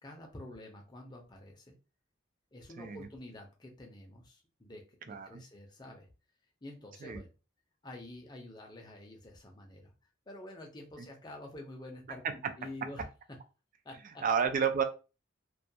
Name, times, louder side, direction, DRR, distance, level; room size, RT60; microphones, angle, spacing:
voice 1, 0.0-1.7 2.5-6.1 6.6-7.3 7.8-9.9 10.3-13.0 13.8-14.2, left 1 dB, 20° left, 1 dB, 0.5 m, -48 dB
voice 2, 2.8-3.1 5.1-5.4 7.0-7.2 12.4-12.5 14.2-14.8, right 6 dB, 40° right, 8 dB, 0.3 m, -30 dB
2.2 x 2.2 x 2.7 m, 0.32 s
head